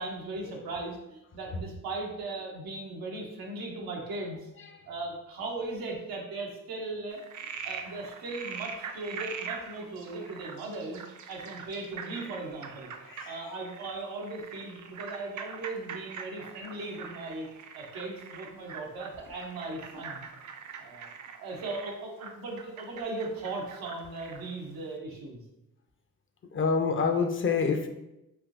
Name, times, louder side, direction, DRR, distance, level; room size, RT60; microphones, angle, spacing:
voice 1, 0.0-4.5 4.9-12.9 13.2-17.5 17.7-20.3 20.8-21.1 21.4-25.4, right 2 dB, 90° right, -1 dB, 0.7 m, -38 dB
Frog, 7.1-24.5, right 6 dB, 60° right, 0.5 m, -43 dB
voice 2, 13.0-13.4 26.5-27.9, left 5 dB, 35° left, 6 dB, 0.4 m, -27 dB
3.4 x 2.7 x 2.5 m, 0.90 s
cardioid pair, 60°, 35 cm